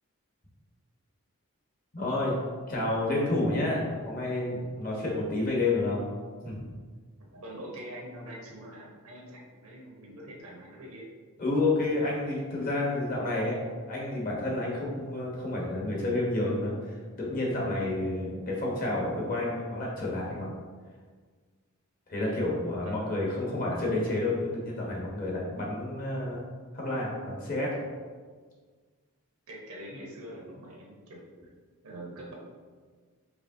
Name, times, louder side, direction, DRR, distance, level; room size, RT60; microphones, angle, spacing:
voice 1, 1.9-2.4 2.7-6.0 6.4-6.7 11.4-20.5 22.1-26.4 26.7-27.8, left 2 dB, 40° left, -3 dB, 0.9 m, -30 dB
voice 2, 7.3-11.1 22.8-23.2 29.5-31.3 31.8-32.3, right 1 dB, 90° right, -2 dB, 1.0 m, -44 dB
4.7 x 3.0 x 2.6 m, 1.5 s
head